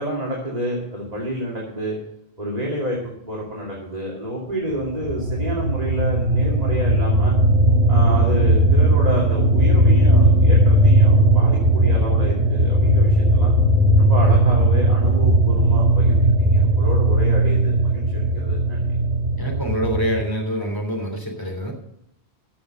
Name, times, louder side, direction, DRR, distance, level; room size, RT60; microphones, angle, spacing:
voice 1, 0.0-2.0 2.4-3.0 3.3-7.4 7.9-13.5 14.0-18.8, right 1 dB, 40° right, -4 dB, 2.7 m, -29 dB
sound 1, 4.8-20.2, right 1 dB, 80° right, 2.1 m, -17 dB
voice 2, 19.4-21.7, equal, 20° left, 1 dB, 3.2 m, -25 dB
14.5 x 6.9 x 6.5 m, 0.79 s
omnidirectional pair, 1.1 m